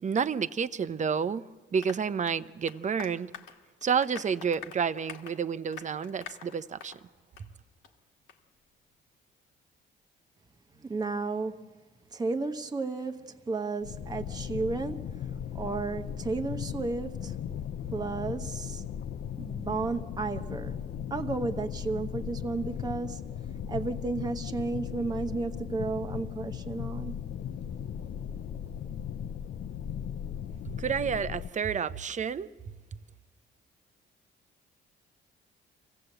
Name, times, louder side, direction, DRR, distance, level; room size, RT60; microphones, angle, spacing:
voice 1, 0.0-3.3 3.8-7.0 30.8-32.5, right 6 dB, 40° right, 0.7 m, -30 dB
Applause, 1.8-7.0 7.4-7.5 7.8-7.9 8.3-8.4, left 7 dB, 85° left, 1.8 m, -46 dB
voice 2, 10.8-11.6 12.1-15.1 15.5-17.4 17.9-18.8 19.4-20.8 21.1-23.3 23.7-27.2, right 3 dB, 20° right, 1.0 m, -33 dB
sound 1, 13.8-31.5, left 9 dB, 60° left, 0.6 m, -37 dB
26.0 x 16.0 x 7.9 m
cardioid pair, 90°, 20 cm